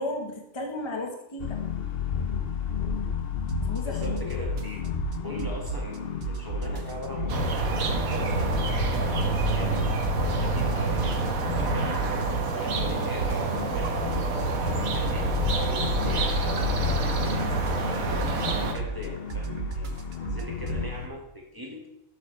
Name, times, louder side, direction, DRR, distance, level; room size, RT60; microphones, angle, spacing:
voice 1, 0.0-1.6 3.6-4.2, left 1 dB, 20° left, 2 dB, 1.2 m, -34 dB
sound 1, 1.4-21.1, left 7 dB, 50° left, 0.9 m, -32 dB
sound 2, 3.5-3.8 4.0-6.0 6.2-8.1 8.4-10.3 10.6-14.7 14.9-20.8, right 5 dB, 55° right, 0.9 m, -33 dB
voice 2, 3.8-4.8 5.2-9.8 10.1-12.2 12.6-19.9 20.2-21.8, equal, 15° right, 0 dB, 1.7 m, -40 dB
sound 3, 7.3-18.7, right 4 dB, 90° right, 1.5 m, -28 dB
11.5 x 7.2 x 3.2 m, 0.87 s
omnidirectional pair, 1.4 m